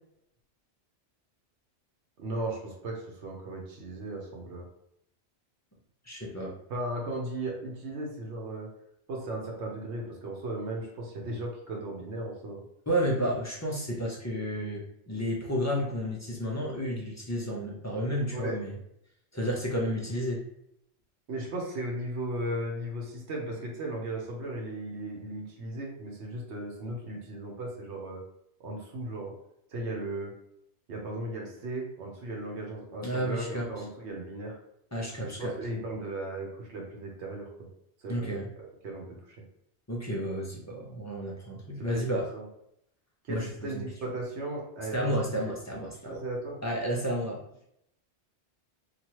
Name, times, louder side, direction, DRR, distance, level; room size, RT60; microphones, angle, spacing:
voice 1, 2.2-4.6 6.7-8.7 9.1-12.6 13.2-13.3 18.3-18.6 21.3-28.2 28.6-29.3 29.7-30.3 30.9-34.6 35.2-37.5 38.0-39.4 41.9-42.0 42.3-42.4 43.2-45.5 46.0-46.6, right 1 dB, 75° right, -1 dB, 1.0 m, -36 dB
voice 2, 6.1-6.5 12.9-18.7 19.3-20.4 33.0-33.6 34.9-35.5 38.1-38.5 39.9-42.3 43.3-43.8 44.9-46.2 46.6-47.4, equal, 25° left, -3 dB, 0.3 m, -31 dB
2.9 x 2.2 x 3.0 m, 0.76 s
omnidirectional pair, 1.2 m